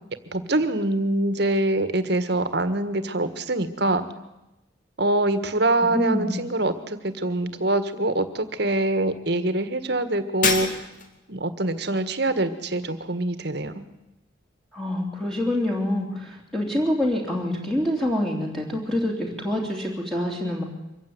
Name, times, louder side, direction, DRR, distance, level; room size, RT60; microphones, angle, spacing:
voice 1, 0.3-4.0 5.0-10.8 11.3-13.8, right 2 dB, 55° right, 11 dB, 1.7 m, -24 dB
voice 2, 5.9-6.4 14.7-20.6, left 1 dB, ahead, -1 dB, 3.2 m, -26 dB
Shatter, 10.4-11.2, left 4 dB, 45° left, 2.4 m, -25 dB
24.5 x 15.5 x 9.6 m, 0.97 s
head